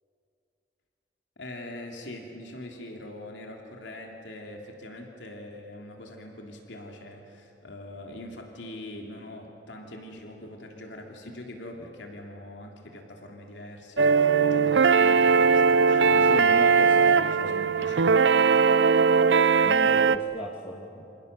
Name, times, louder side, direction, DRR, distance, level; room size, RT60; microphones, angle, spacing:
voice 1, 1.4-18.2, left 1 dB, 80° left, 2 dB, 3.2 m, -43 dB
sound 1, 14.0-20.2, right 5 dB, 75° right, 0.7 m, -20 dB
voice 2, 16.2-17.7 19.6-21.2, left 1 dB, 30° left, -3 dB, 2.5 m, -37 dB
29.0 x 27.0 x 6.8 m, 2.7 s
head